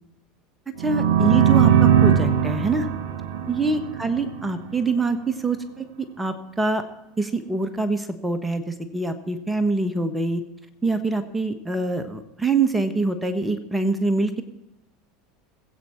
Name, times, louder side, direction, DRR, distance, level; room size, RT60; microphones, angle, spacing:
voice 1, 0.8-2.9 3.5-6.8 7.2-10.4 10.8-14.4, right 3 dB, 10° right, 9 dB, 1.3 m, -25 dB
sound 1, 0.8-4.5, right 9 dB, 65° right, 1.9 m, -20 dB
20.0 x 8.6 x 4.6 m, 0.90 s
figure-of-eight pair, 75°, 0 cm